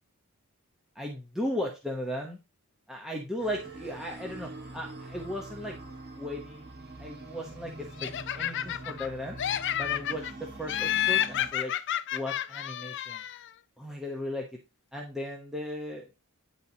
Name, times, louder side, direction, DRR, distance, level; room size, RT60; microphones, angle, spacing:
voice 1, 0.9-2.3 2.9-5.8 6.2-6.7 7.0-9.4 9.8-11.7 12.1-13.2 13.8-14.5 14.9-16.1, left 1 dB, ahead, -1 dB, 1.0 m, -36 dB
sound 1, 3.4-11.5, right 2 dB, 45° right, 2.1 m, -44 dB
Laughter, 8.0-9.1 9.4-10.3 10.7-13.5, left 11 dB, 55° left, 0.4 m, -30 dB
10.0 x 4.1 x 2.9 m, 0.26 s
head